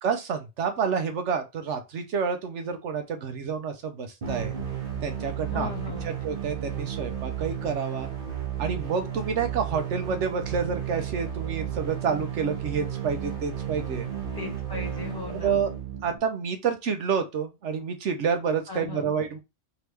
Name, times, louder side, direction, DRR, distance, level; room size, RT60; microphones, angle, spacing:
voice 1, 0.0-4.5 5.0-5.7 6.0-8.1 8.6-14.1 15.4-15.7 16.0-19.4, right 6 dB, 75° right, 6 dB, 1.0 m, -29 dB
sound 1, 4.2-16.2, right 9 dB, 45° right, 1.3 m, -33 dB
voice 2, 5.5-6.2 14.3-15.6 18.7-19.2, left 4 dB, 20° left, -1 dB, 1.5 m, -37 dB
4.6 x 3.0 x 3.3 m, 0.24 s
omnidirectional pair, 1.3 m